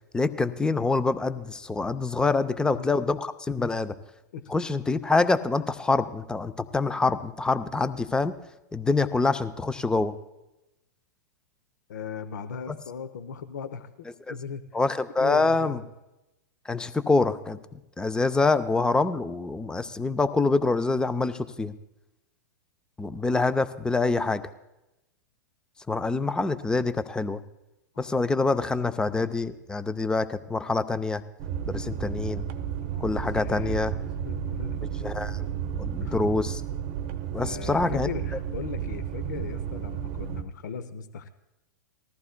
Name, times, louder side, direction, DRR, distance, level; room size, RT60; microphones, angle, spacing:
voice 1, 0.1-4.0 4.5-8.3 8.7-10.1 12.7-12.8 14.3-14.4 14.7-15.8 16.7-17.6 18.0-21.7 23.0-24.4 25.9-27.4 28.0-31.2 31.6-32.4 33.0-33.9 35.0-35.4 35.8-36.6 37.3-38.1, left 3 dB, 10° left, 13 dB, 0.5 m, -25 dB
voice 2, 2.5-2.9 4.3-4.5 11.9-14.8 15.2-15.8 27.9-28.1 32.9-34.9 36.0-36.2 37.4-41.3, left 6 dB, 65° left, 11 dB, 0.7 m, -38 dB
sound 1, 31.4-40.4, right 9 dB, 45° right, 0.8 m, -32 dB
19.5 x 14.0 x 2.2 m, 0.96 s
hypercardioid pair, 105°, 10 cm